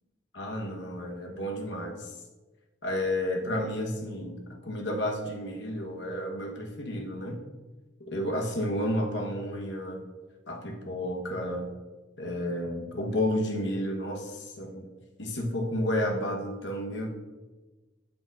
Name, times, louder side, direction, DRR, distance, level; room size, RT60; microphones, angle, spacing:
voice 1, 0.3-2.2 2.8-7.4 8.0-10.0 10.5-11.7 12.2-14.9 15.2-17.1, left 1 dB, 70° left, 2 dB, 1.1 m, -31 dB
11.5 x 5.2 x 2.5 m, 1.2 s
head